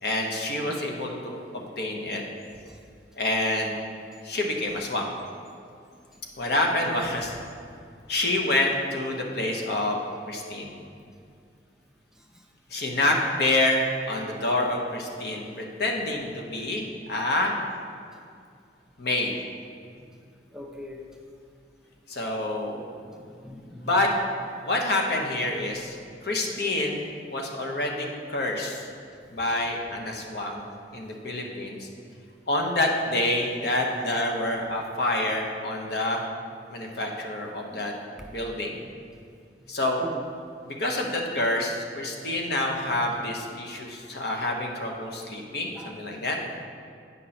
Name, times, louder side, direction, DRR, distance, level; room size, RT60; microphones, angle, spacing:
voice 1, 0.0-1.4 1.8-2.2 3.1-3.7 4.2-5.1 6.4-7.4 8.1-10.0 10.3-10.8 12.7-13.8 14.1-17.5 19.0-19.3 22.1-22.8 23.8-24.1 24.7-26.0 26.2-27.0 27.3-28.9 29.3-30.6 30.9-31.9 32.5-36.2 36.7-37.9 38.3-38.7 39.7-40.0 40.7-46.4, left 2 dB, 65° left, 1 dB, 1.0 m, -27 dB
voice 2, 0.7-1.1 1.6-1.7 2.7-2.8 12.2-12.4 12.8-13.2 15.3-15.7 20.0-20.1 20.5-21.0 23.0-24.1 37.7-37.9 38.2-38.6 40.0-40.2 45.7-45.9, equal, 5° right, 1 dB, 0.5 m, -43 dB
8.9 x 5.4 x 4.2 m, 2.4 s
head